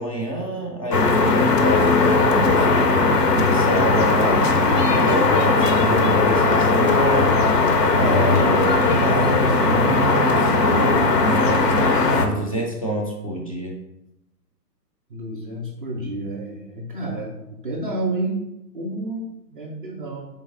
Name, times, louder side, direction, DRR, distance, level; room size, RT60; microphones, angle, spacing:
voice 1, 0.0-2.7 3.3-7.3 7.8-10.6 11.2-11.8 12.2-13.8, right 1 dB, 25° left, -1 dB, 0.4 m, -27 dB
sound 1, 0.9-12.3, left 3 dB, 70° left, 0.8 m, -18 dB
voice 2, 15.1-18.4 18.7-20.3, right 2 dB, 35° right, 0 dB, 0.5 m, -30 dB
3.9 x 3.3 x 3.6 m, 0.91 s
figure-of-eight pair, 125°, 50 cm